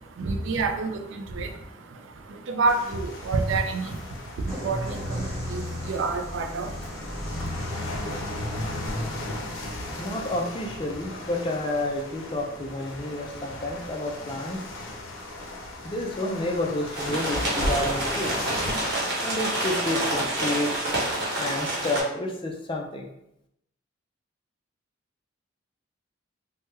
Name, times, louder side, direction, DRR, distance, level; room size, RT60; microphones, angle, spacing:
voice 1, 0.0-7.3, right 3 dB, 65° right, 6 dB, 0.3 m, -29 dB
sound 1, 2.7-18.8, left 1 dB, 85° left, 0.5 m, -36 dB
sound 2, 4.5-12.0, equal, 40° left, 1.4 m, -35 dB
voice 2, 10.0-14.7 15.8-18.3 19.2-20.9 21.4-23.1, left 1 dB, 25° left, 1 dB, 0.3 m, -30 dB
sound 3, 16.9-22.0, right 1 dB, 50° right, 0.9 m, -28 dB
3.3 x 2.1 x 3.1 m, 0.81 s
head